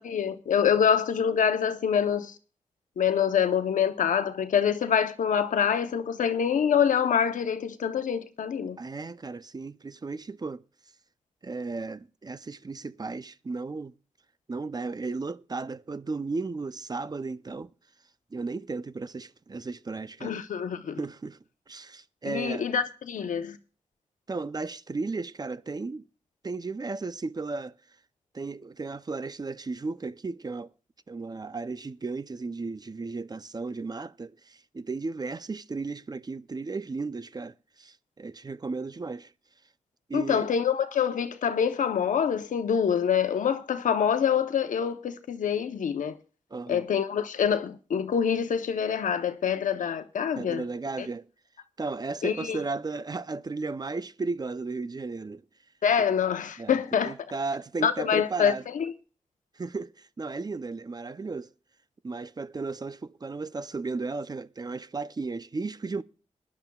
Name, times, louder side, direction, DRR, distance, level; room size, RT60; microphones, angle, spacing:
voice 1, 0.0-2.3 3.0-8.8 20.2-21.0 22.3-23.6 40.1-46.1 46.7-50.6 51.0-51.1 52.2-52.6 55.8-57.1 57.8-58.9, left 7 dB, 85° left, 0.8 m, -26 dB
voice 2, 8.8-10.6 11.4-13.9 14.5-17.7 18.3-20.3 21.0-21.4 21.7-22.7 24.3-26.0 26.4-27.7 28.3-30.7 31.1-39.3 40.1-40.5 46.5-46.9 50.3-51.3 51.8-55.4 56.6-56.8 57.0-58.6 59.6-61.5 62.0-66.0, right 3 dB, 30° right, 0.5 m, -35 dB
20.5 x 11.0 x 2.3 m
cardioid pair, 65°, 13 cm